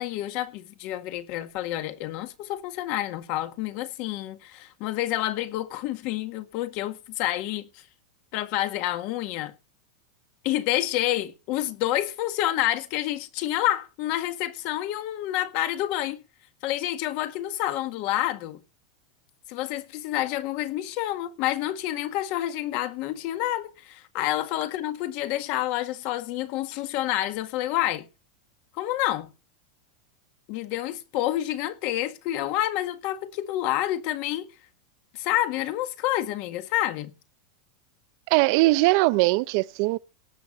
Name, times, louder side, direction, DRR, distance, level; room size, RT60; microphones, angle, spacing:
voice 1, 0.0-7.7 8.3-9.5 10.4-16.2 16.6-18.6 19.5-28.1 28.8-29.3 30.5-34.5 35.1-37.1, left 14 dB, 45° left, 1.8 m, -28 dB
voice 2, 38.3-40.0, right 21 dB, 50° right, 0.6 m, -21 dB
18.0 x 8.3 x 5.5 m
supercardioid pair, 155°, 3 cm